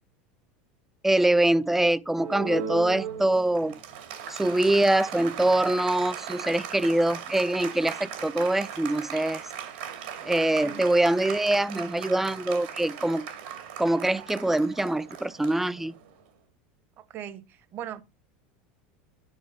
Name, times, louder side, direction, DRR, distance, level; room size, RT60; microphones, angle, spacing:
voice 1, 1.0-3.8 4.3-9.4 10.2-13.3 13.8-15.9, right 1 dB, 5° right, 0.4 m, -24 dB
Applause, 2.1-16.2, right 8 dB, 80° right, 2.3 m, -38 dB
voice 2, 17.0-18.0, right 10 dB, 45° right, 1.0 m, -39 dB
10.5 x 4.6 x 5.6 m
supercardioid pair, 120°, 5 cm